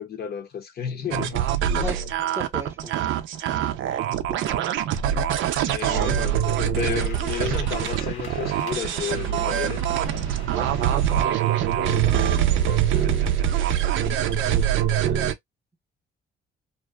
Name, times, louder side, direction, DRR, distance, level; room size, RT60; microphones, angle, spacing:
voice 1, 0.0-1.5 5.7-9.9 12.5-13.1, left 7 dB, 55° left, 0.7 m, -32 dB
sound 1, 1.1-15.3, right 10 dB, 80° right, 0.5 m, -24 dB
voice 2, 1.8-2.1 2.4-3.1 4.3-4.6 10.5-11.4 11.9-12.2 13.9-14.2, right 1 dB, 10° right, 0.7 m, -36 dB
sound 2, 6.8-14.8, left 5 dB, 80° left, 1.1 m, -45 dB
2.5 x 2.2 x 2.2 m
cardioid pair, 90°, 20 cm